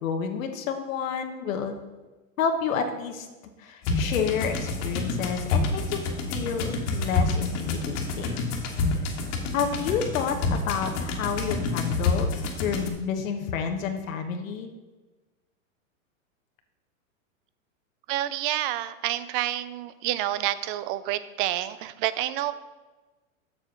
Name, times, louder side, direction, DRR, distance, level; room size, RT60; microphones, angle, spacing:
voice 1, 0.0-1.8 2.4-3.3 3.6-6.0 6.3-8.5 9.5-12.3 12.6-14.7, left 6 dB, 75° left, 5 dB, 1.2 m, -29 dB
sound 1, 3.8-12.9, left 3 dB, 40° left, 1.7 m, -28 dB
voice 2, 18.1-22.5, right 14 dB, 40° right, 15 dB, 0.6 m, -28 dB
7.7 x 6.8 x 6.0 m, 1.2 s
hypercardioid pair, 135°, 41 cm